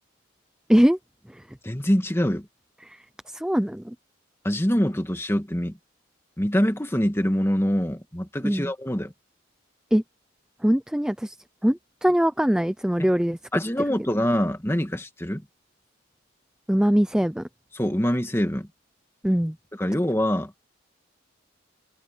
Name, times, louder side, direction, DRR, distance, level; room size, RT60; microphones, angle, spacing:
voice 1, 1.6-2.5 4.4-5.8 6.4-9.1 13.5-15.4 17.7-18.7 19.8-20.5, equal, 10° left, 1.5 m, -24 dB
voice 2, 2.8-3.9 8.4-8.7 9.9-10.0 10.6-11.4 11.6-13.4 16.7-17.5 19.2-19.6, equal, 5° right, 0.3 m, -22 dB
head